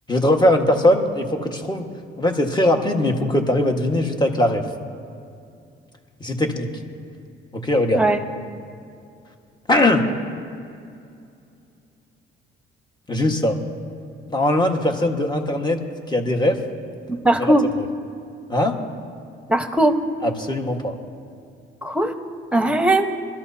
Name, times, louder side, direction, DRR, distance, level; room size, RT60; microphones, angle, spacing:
voice 1, 0.1-1.9 2.2-4.6 6.2-6.7 7.5-8.0 9.7-10.0 13.1-13.6 14.3-15.8 16.1-16.6 18.5-18.8 20.2-20.9, left 1 dB, 20° left, 2 dB, 1.5 m, -20 dB
voice 2, 17.2-17.7 19.5-20.0 21.8-22.1 22.5-23.1, right 1 dB, 5° right, 6 dB, 1.1 m, -18 dB
24.0 x 13.0 x 2.8 m, 2.5 s
cardioid pair, 90°, 20 cm